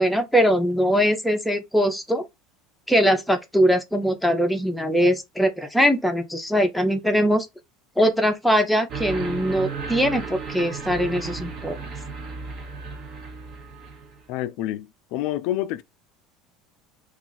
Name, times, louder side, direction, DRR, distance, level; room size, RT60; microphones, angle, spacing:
voice 1, 0.0-2.3 2.9-7.5 8.0-11.8, equal, ahead, 0.5 m, -21 dB
sound 1, 8.9-14.3, right 4 dB, 40° right, 0.7 m, -34 dB
voice 2, 14.3-15.8, left 13 dB, 65° left, 0.3 m, -28 dB
2.4 x 2.4 x 3.8 m
supercardioid pair, 130°, 0 cm